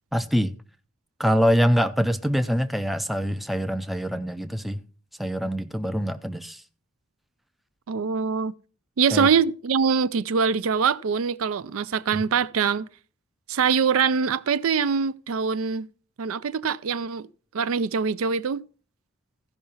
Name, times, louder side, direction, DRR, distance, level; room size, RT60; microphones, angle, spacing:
voice 1, 0.1-0.5 1.2-4.8 5.2-6.6 9.1-9.3 12.1-12.2, equal, ahead, 0.4 m, -24 dB
voice 2, 7.9-8.5 9.0-12.9 13.5-15.9 16.2-17.3 17.5-18.6, right 6 dB, 70° right, 0.4 m, -23 dB
15.0 x 5.6 x 5.5 m
head